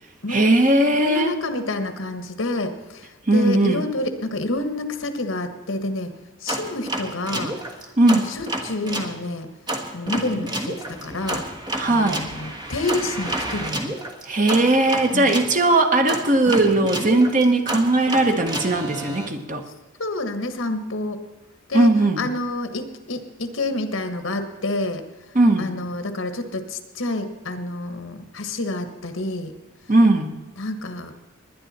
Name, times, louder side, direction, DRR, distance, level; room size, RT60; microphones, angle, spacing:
voice 1, 0.3-1.3 3.3-3.8 8.0-8.2 11.8-12.2 14.3-19.6 21.7-22.3 25.3-25.7 29.9-30.3, right 2 dB, 40° right, 4 dB, 1.3 m, -18 dB
voice 2, 0.9-6.1 6.4-7.5 8.1-9.5 9.9-11.4 11.9-13.9 15.1-15.3 20.0-21.2 21.7-25.0 25.6-29.5 30.6-31.1, left 2 dB, 75° left, 8 dB, 1.5 m, -28 dB
sound 1, 6.5-9.1 9.7-15.5 16.1-19.3, right 1 dB, 20° right, 1.4 m, -29 dB
20.0 x 10.5 x 4.3 m, 1.2 s
head